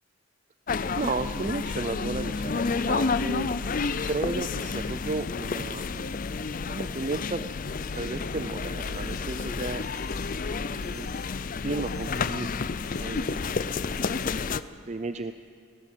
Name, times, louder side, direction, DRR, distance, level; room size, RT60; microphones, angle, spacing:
sound 1, 0.7-14.6, left 4 dB, 40° left, 0.4 m, -30 dB
voice 1, 1.0-3.5 4.0-9.9 10.5-11.1 11.6-12.6 13.0-14.1 14.9-15.3, right 3 dB, 35° right, 9 dB, 0.4 m, -34 dB
sound 2, 5.1-5.3 5.8-6.3 6.8-7.3 7.8-8.3 8.8-9.3 9.8-10.3 10.8-11.3 11.8-12.3 12.8-13.3 13.8-14.3, left 2 dB, 15° left, 3.4 m, -55 dB
19.5 x 18.0 x 7.5 m, 2.3 s
head